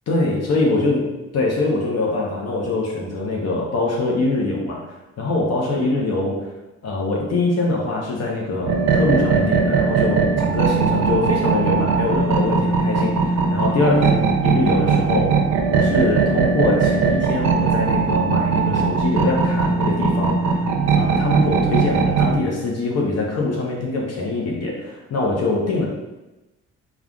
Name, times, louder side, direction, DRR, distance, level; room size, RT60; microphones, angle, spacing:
voice 1, 0.1-1.0 1.3-4.9 5.2-6.5 6.8-15.4 15.7-20.6 20.9-25.9, left 2 dB, 55° left, -2 dB, 0.7 m, -23 dB
sound 1, 8.6-22.4, right 5 dB, 65° right, 0.5 m, -19 dB
3.6 x 2.3 x 2.2 m, 1.0 s
cardioid pair, 90°, 30 cm